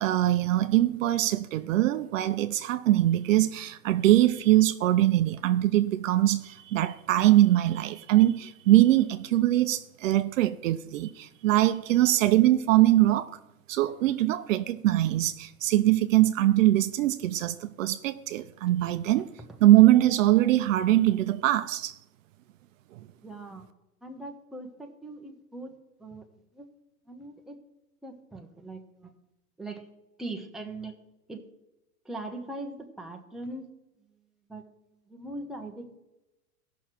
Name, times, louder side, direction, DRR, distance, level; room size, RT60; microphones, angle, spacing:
voice 1, 0.0-13.4 13.7-19.3 19.6-22.0, right 14 dB, 60° right, 0.6 m, -22 dB
voice 2, 23.2-23.6 24.0-25.7 26.0-26.2 26.5-26.7 27.1-27.6 28.0-29.1 29.6-29.9 30.2-30.9 31.3-31.4 32.0-33.7 34.5-34.6 35.1-36.0, right 2 dB, ahead, 0.9 m, -40 dB
15.5 x 6.2 x 4.4 m
hypercardioid pair, 125°, 45 cm